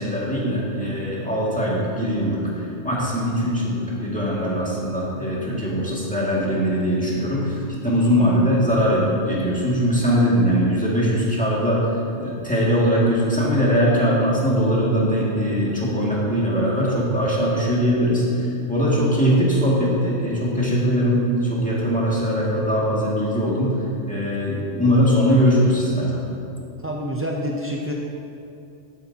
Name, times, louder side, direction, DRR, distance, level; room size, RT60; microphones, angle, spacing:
voice 1, 0.0-11.9 12.2-23.8 24.1-26.3, equal, 5° left, -7 dB, 2.1 m, -21 dB
voice 2, 26.8-27.9, equal, 20° right, -2 dB, 0.3 m, -27 dB
14.0 x 8.5 x 2.8 m, 2.6 s
omnidirectional pair, 1.2 m